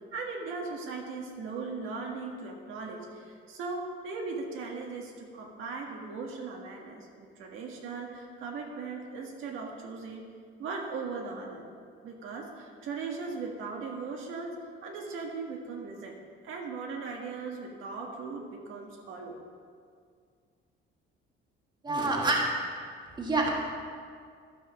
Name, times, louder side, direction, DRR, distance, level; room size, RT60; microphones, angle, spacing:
voice 1, 0.1-10.2 10.6-11.7 12.0-14.5 14.8-16.2 16.4-19.4, right 4 dB, 75° right, 0 dB, 1.7 m, -38 dB
voice 2, 21.8-22.4 23.2-23.5, right 2 dB, 20° right, -1 dB, 1.6 m, -26 dB
13.0 x 5.6 x 6.3 m, 2.1 s
cardioid pair, 145°, 21 cm